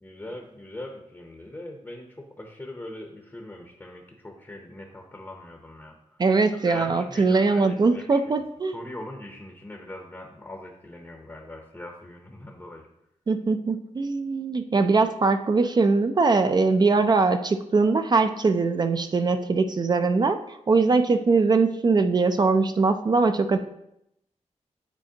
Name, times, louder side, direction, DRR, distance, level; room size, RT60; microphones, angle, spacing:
voice 1, 0.0-6.2 6.6-8.2 8.7-12.9, left 1 dB, 15° left, 1 dB, 0.7 m, -41 dB
voice 2, 6.2-8.8 13.3-23.6, right 4 dB, 35° right, 8 dB, 0.4 m, -22 dB
8.9 x 4.2 x 2.8 m, 0.81 s
wide cardioid pair, 150°, 12 cm